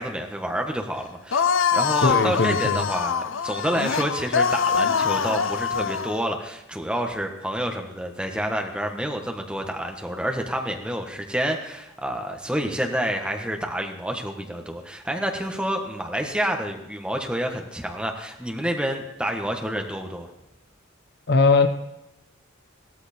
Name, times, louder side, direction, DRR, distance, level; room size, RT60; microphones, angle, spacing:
voice 1, 0.0-20.3, equal, 5° right, 3 dB, 1.4 m, -28 dB
sound 1, 1.3-6.2, left 6 dB, 75° left, 0.6 m, -24 dB
voice 2, 2.0-2.9 21.3-21.7, left 3 dB, 55° left, 9 dB, 0.9 m, -20 dB
16.0 x 13.5 x 4.4 m, 0.91 s
head